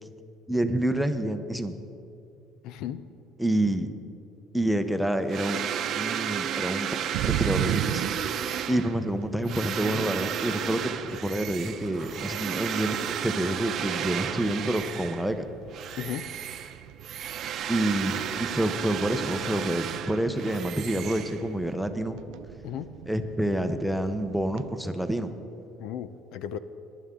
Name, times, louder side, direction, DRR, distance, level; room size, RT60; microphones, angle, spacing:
voice 1, 0.5-1.7 3.4-3.9 4.5-5.6 5.9-6.9 7.2-8.0 8.7-10.9 11.2-13.0 13.2-15.5 17.7-22.2 23.1-25.4, right 1 dB, ahead, 8 dB, 0.7 m, -28 dB
voice 2, 2.6-3.0 16.0-16.3 22.6-22.9 25.8-26.6, left 10 dB, 70° left, 13 dB, 0.5 m, -35 dB
sound 1, 5.3-15.4 15.7-21.7, right 8 dB, 50° right, 0.8 m, -33 dB
sound 2, 7.1-24.7, right 13 dB, 75° right, 0.4 m, -39 dB
21.5 x 11.0 x 3.7 m, 2.6 s
cardioid pair, 130°, 0 cm